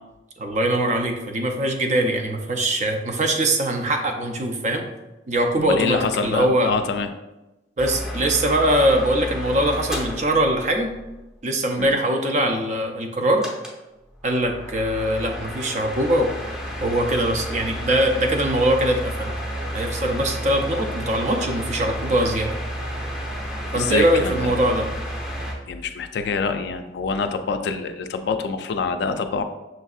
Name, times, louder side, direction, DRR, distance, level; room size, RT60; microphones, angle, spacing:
voice 1, 0.4-4.9 5.3-6.7 7.8-10.9 11.4-13.5 14.2-16.4 16.8-19.3 19.7-22.6 23.7-24.9, right 1 dB, 40° right, 4 dB, 0.5 m, -22 dB
voice 2, 5.6-7.1 11.8-11.9 23.7-24.7 25.7-29.4, left 4 dB, 65° left, 8 dB, 0.3 m, -26 dB
sound 1, 7.8-11.1 13.4-13.8 14.2-25.5, equal, 5° right, 0.7 m, -31 dB
6.2 x 2.6 x 2.4 m, 1.0 s
head